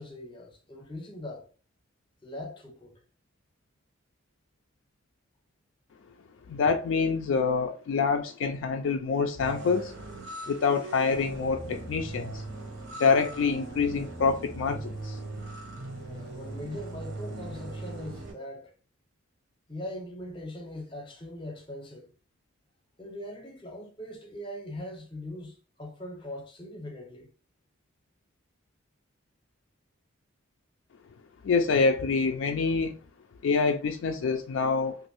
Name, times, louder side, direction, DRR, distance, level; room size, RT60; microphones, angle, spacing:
voice 1, 0.0-1.5 2.2-3.0 16.0-18.7 19.7-22.1 23.0-27.3, left 1 dB, 25° left, 0.6 m, -41 dB
voice 2, 6.5-9.9 10.5-12.4 13.0-15.2 31.4-33.0 33.4-35.0, left 4 dB, 65° left, 0.3 m, -26 dB
sound 1, 9.4-18.3, right 2 dB, 75° right, 0.9 m, -40 dB
3.0 x 2.5 x 3.0 m
head